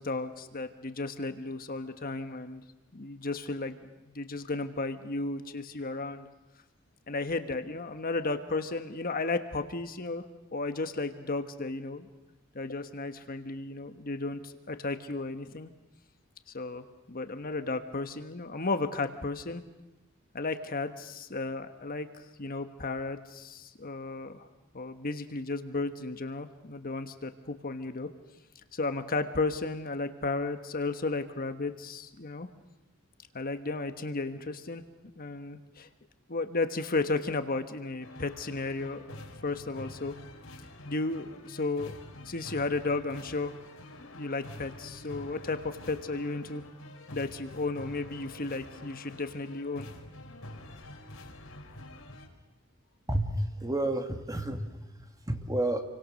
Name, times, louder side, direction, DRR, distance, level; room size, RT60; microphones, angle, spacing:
voice 1, 0.0-2.6 2.9-3.8 4.1-6.3 7.1-10.2 10.5-12.1 12.5-15.7 16.5-19.6 20.3-22.1 22.4-24.5 24.7-28.1 28.7-32.5 33.3-34.8 35.2-35.9 36.3-39.0 39.4-40.1 40.9-42.0 42.2-43.5 44.1-46.6 47.1-49.9, left 3 dB, 45° left, 8 dB, 1.3 m, -34 dB
sound 1, 38.0-52.3, left 1 dB, 70° left, 4.5 m, -47 dB
voice 2, 53.1-55.8, right 1 dB, 15° right, 6 dB, 2.0 m, -31 dB
29.0 x 24.5 x 6.4 m, 1.0 s
head